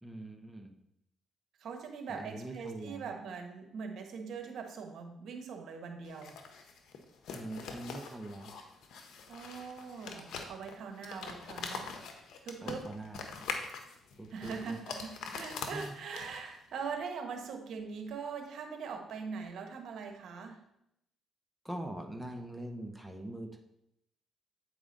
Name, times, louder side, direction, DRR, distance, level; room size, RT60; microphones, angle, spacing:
voice 1, 0.0-0.7 2.1-3.1 7.3-8.5 9.4-9.5 12.6-13.2 14.2-14.8 15.7-15.9 21.6-23.6, right 1 dB, 5° right, 3 dB, 0.9 m, -43 dB
voice 2, 1.6-6.3 9.3-11.9 12.4-12.9 14.3-20.6, right 5 dB, 70° right, 5 dB, 1.1 m, -42 dB
sound 1, 6.0-16.6, left 5 dB, 75° left, 1.0 m, -44 dB
8.5 x 4.9 x 3.9 m, 0.79 s
cardioid pair, 90°, 0 cm